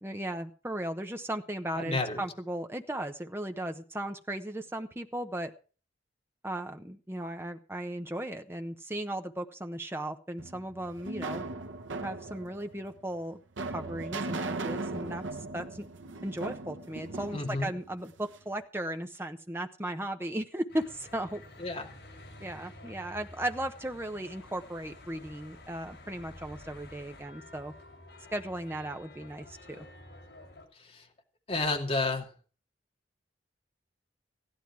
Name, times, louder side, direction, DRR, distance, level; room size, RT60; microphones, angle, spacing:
voice 1, 0.0-5.5 6.4-11.4 12.0-13.4 13.7-15.2 15.5-15.9 16.2-21.4 22.4-27.7 28.3-29.9, right 1 dB, 10° right, 6 dB, 1.0 m, -36 dB
voice 2, 1.8-2.2 17.3-17.7 21.6-21.9 30.7-31.1 31.5-32.3, left 3 dB, 30° left, 1 dB, 2.5 m, -31 dB
sound 1, 10.4-18.5, right 3 dB, 80° right, 1.0 m, -38 dB
Church bell / Traffic noise roadway noise, 20.7-30.7, left 2 dB, 60° left, 7.9 m, -50 dB
15.5 x 11.5 x 4.8 m, 0.38 s
head